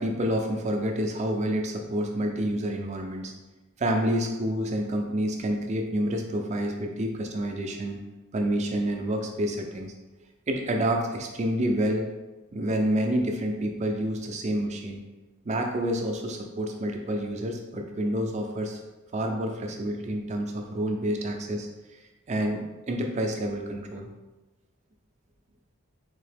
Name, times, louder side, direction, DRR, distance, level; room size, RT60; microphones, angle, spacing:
voice 1, 0.0-3.3 3.8-8.0 8.3-9.9 10.5-12.1 12.5-15.0 15.4-18.8 19.1-21.7 22.3-24.1, right 1 dB, 30° right, 3 dB, 0.4 m, -28 dB
3.8 x 2.7 x 3.3 m, 1.1 s
head